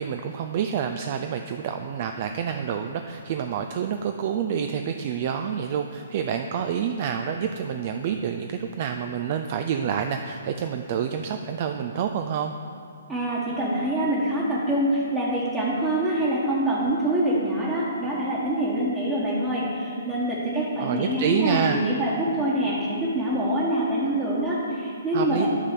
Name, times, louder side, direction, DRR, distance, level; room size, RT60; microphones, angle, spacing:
voice 1, 0.0-12.5 20.8-21.8 25.1-25.5, right 8 dB, 45° right, 6 dB, 0.4 m, -28 dB
voice 2, 13.1-25.5, right 1 dB, 15° right, -8 dB, 1.4 m, -25 dB
10.0 x 4.1 x 6.7 m, 2.5 s
figure-of-eight pair, 135°, 0 cm